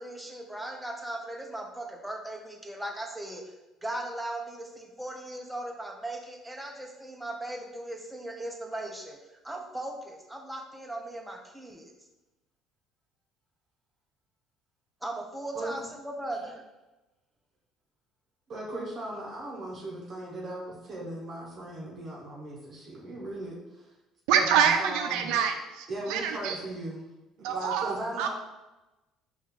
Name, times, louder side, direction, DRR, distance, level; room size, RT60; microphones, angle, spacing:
voice 1, 0.0-3.4 3.8-9.2 9.4-11.9 15.0-16.6, right 1 dB, 5° right, 1 dB, 0.7 m, -38 dB
voice 2, 18.5-23.9 24.3-25.3 25.9-27.0 27.5-28.3, right 1 dB, 45° right, -3 dB, 0.8 m, -37 dB
voice 3, 24.3-26.6 27.4-28.3, right 8 dB, 85° right, 6 dB, 0.5 m, -26 dB
4.2 x 2.4 x 3.7 m, 1.0 s
supercardioid pair, 95°, 0 cm